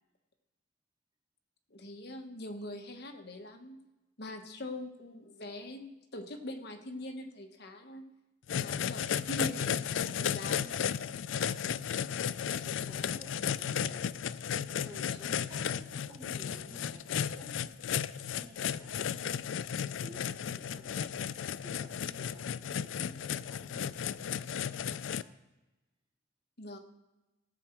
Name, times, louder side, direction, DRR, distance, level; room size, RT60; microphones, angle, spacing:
voice 1, 1.7-3.8 4.2-8.0 8.6-10.6 26.6-26.8, left 1 dB, 55° left, 4 dB, 1.4 m, -43 dB
sound 1, 8.5-25.2, left 8 dB, 80° left, 0.4 m, -34 dB
voice 2, 10.1-10.8 11.3-12.1 12.5-14.1 14.7-17.5 18.3-22.7 23.0-25.3, right 1 dB, 25° right, -5 dB, 2.5 m, -55 dB
17.0 x 7.6 x 4.6 m, 1.1 s
head